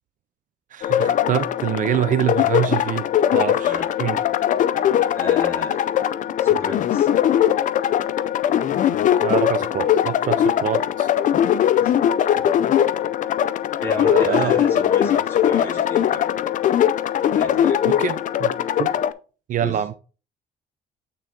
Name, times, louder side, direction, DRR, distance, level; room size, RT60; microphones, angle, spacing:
voice 1, 0.7-3.1 3.3-4.2 9.2-11.1 14.0-14.6 17.8-18.5 18.8-18.9 19.5-19.9, right 10 dB, 50° right, 0.4 m, -25 dB
sound 1, 0.8-19.1, left 10 dB, 50° left, 0.5 m, -20 dB
voice 2, 5.1-5.8 6.4-7.1 11.8-11.9 13.8-16.3 17.3-18.0 19.6-19.8, left 3 dB, 15° left, 2.3 m, -32 dB
8.8 x 3.8 x 3.8 m
cardioid pair, 110°, 17 cm